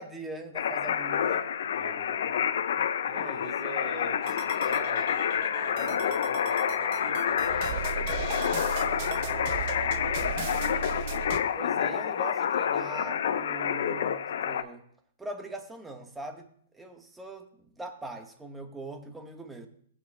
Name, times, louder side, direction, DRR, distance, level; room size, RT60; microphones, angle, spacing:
voice 1, 0.0-1.5 3.2-3.5 11.5-14.8 15.2-16.5 16.7-19.7, right 2 dB, 10° right, 5 dB, 1.3 m, -41 dB
sound 1, 0.5-14.6, left 8 dB, 65° left, 0.7 m, -28 dB
voice 2, 1.7-9.6 10.0-10.7, right 2 dB, 25° right, 0 dB, 2.8 m, -46 dB
sound 2, 4.2-11.4, right 7 dB, 45° right, 0.8 m, -37 dB
18.0 x 9.0 x 2.2 m, 0.62 s
hypercardioid pair, 130°, 0 cm